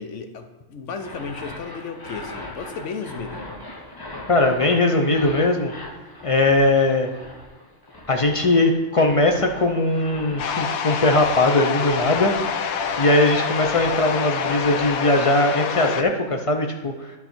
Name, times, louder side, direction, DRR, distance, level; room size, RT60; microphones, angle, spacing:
voice 1, 0.0-3.4, left 5 dB, 65° left, 7 dB, 1.0 m, -34 dB
sound 1, 0.9-15.3, left 1 dB, 20° left, 0.8 m, -39 dB
voice 2, 4.3-5.7 6.2-7.1 8.1-17.1, left 2 dB, 50° left, 3 dB, 0.4 m, -20 dB
sound 2, 10.4-16.0, left 6 dB, 85° left, 1.1 m, -26 dB
11.5 x 4.0 x 4.4 m, 1.3 s
omnidirectional pair, 1.4 m